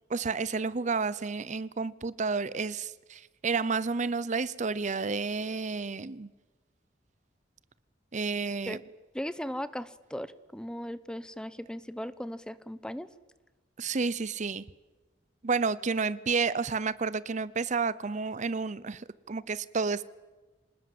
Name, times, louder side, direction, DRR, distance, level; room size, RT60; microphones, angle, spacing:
voice 1, 0.1-6.3 8.1-8.8 13.8-14.6 15.4-20.0, right 4 dB, 40° right, 18 dB, 0.7 m, -31 dB
voice 2, 9.1-13.1, equal, 5° left, 16 dB, 0.8 m, -37 dB
25.5 x 20.0 x 7.8 m, 1.2 s
head